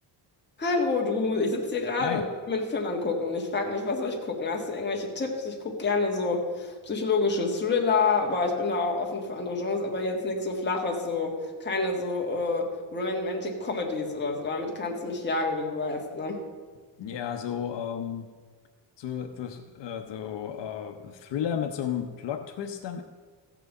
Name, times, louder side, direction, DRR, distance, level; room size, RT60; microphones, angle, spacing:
voice 1, 0.6-16.4, left 3 dB, 25° left, 0 dB, 1.6 m, -28 dB
voice 2, 17.0-18.3 19.0-23.0, left 8 dB, 70° left, 5 dB, 0.9 m, -33 dB
14.5 x 6.0 x 8.2 m, 1.5 s
cardioid pair, 180°, 44 cm